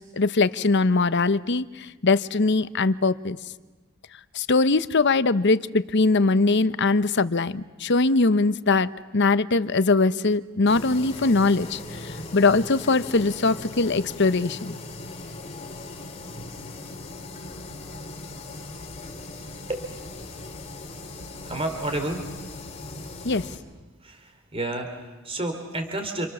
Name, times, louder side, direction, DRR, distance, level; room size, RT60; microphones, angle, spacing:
voice 1, 0.0-3.4 4.3-14.7 23.2-23.4, left 3 dB, 50° left, 14 dB, 0.8 m, -22 dB
sound 1, 10.7-23.6, left 2 dB, 30° left, 3.2 m, -39 dB
voice 2, 21.4-22.4 24.0-26.3, right 2 dB, 25° right, 5 dB, 3.8 m, -30 dB
29.0 x 28.0 x 7.2 m, 1.2 s
head